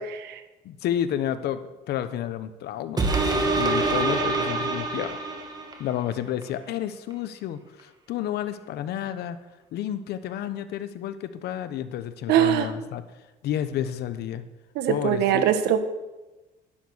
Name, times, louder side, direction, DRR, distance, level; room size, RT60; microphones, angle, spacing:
voice 1, 0.6-3.1 3.6-5.2 5.8-9.4 9.7-13.0 13.4-14.4 14.9-15.4, left 11 dB, 75° left, 12 dB, 1.0 m, -30 dB
sound 1, 3.0-5.9 6.4-6.5, right 3 dB, 25° right, 2.2 m, -25 dB
voice 2, 12.3-12.7 14.7-15.8, right 10 dB, 80° right, 10 dB, 1.4 m, -21 dB
11.5 x 11.5 x 6.4 m, 1.1 s
cardioid pair, 110°, 17 cm